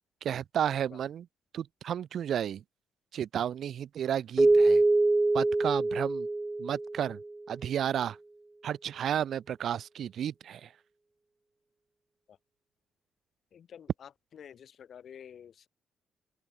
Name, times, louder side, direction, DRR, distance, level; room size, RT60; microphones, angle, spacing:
voice 1, 0.2-1.3 1.5-2.6 3.1-4.8 5.3-6.3 6.6-7.2 7.5-8.2 8.6-10.7, right 9 dB, 65° right, 4.2 m, -32 dB
Keyboard (musical), 4.4-7.3, right 2 dB, 20° right, 0.9 m, -24 dB
voice 2, 13.5-13.9 14.4-15.7, left 8 dB, 60° left, 6.0 m, -49 dB
open air
cardioid pair, 90°, 0 cm